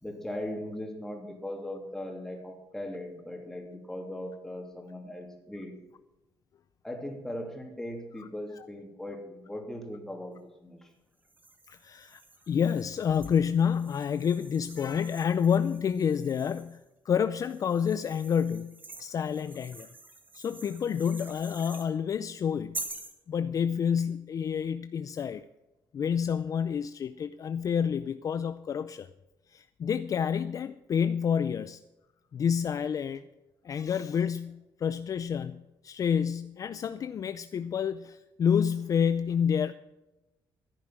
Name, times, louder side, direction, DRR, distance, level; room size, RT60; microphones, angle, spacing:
voice 1, 0.0-5.8 6.8-10.9, left 1 dB, 5° left, 1 dB, 3.0 m, -39 dB
sound 1, 11.2-16.8 17.4-21.9 22.7-23.2, right 2 dB, 20° right, 2.1 m, -46 dB
voice 2, 11.7-12.2 12.5-16.8 17.0-19.9 20.3-22.8 23.3-25.4 25.9-29.1 29.5-31.8 32.3-33.2 33.6-39.7, left 7 dB, 40° left, 12 dB, 0.5 m, -29 dB
15.0 x 10.0 x 6.1 m, 1.0 s
cardioid pair, 140°, 9 cm